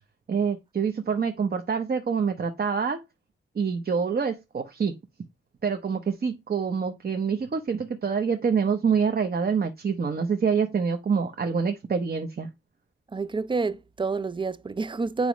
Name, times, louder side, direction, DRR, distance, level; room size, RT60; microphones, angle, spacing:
voice 1, 0.3-3.0 3.5-4.9 5.6-12.5, right 6 dB, 50° right, 0.9 m, -26 dB
voice 2, 13.1-15.3, right 4 dB, 25° right, 0.4 m, -28 dB
8.9 x 3.0 x 5.1 m
wide cardioid pair, 110°, 21 cm